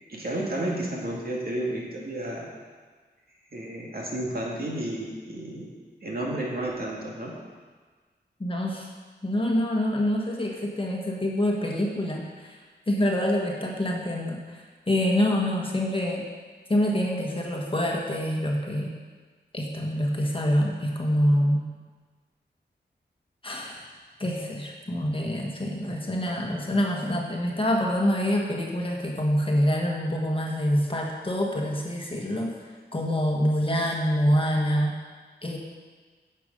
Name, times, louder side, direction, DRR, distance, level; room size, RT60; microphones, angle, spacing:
voice 1, 0.1-2.5 3.5-5.7 6.0-7.3, right 1 dB, 55° right, -3 dB, 2.3 m, -31 dB
voice 2, 8.4-8.9 9.2-12.6 12.9-16.2 16.7-18.9 19.5-21.7 23.4-23.8 24.2-32.5 32.9-34.9 35.4-35.6, equal, 30° left, -1 dB, 1.4 m, -26 dB
10.5 x 6.8 x 5.2 m, 1.4 s
wide cardioid pair, 80°, 18 cm